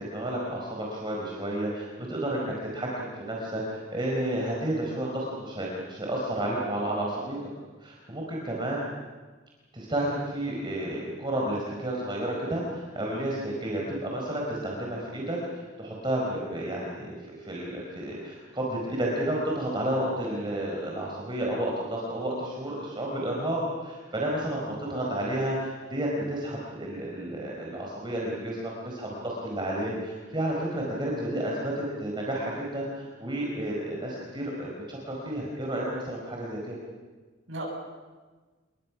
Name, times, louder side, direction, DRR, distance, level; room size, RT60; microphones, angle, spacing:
voice 1, 0.0-7.4 7.8-8.8 9.7-17.2 17.4-36.7, right 1 dB, 25° right, -3 dB, 4.5 m, -31 dB
voice 2, 24.6-25.1 37.5-37.6, right 1 dB, 75° right, -3 dB, 8.0 m, -39 dB
29.5 x 22.5 x 6.1 m, 1.3 s
head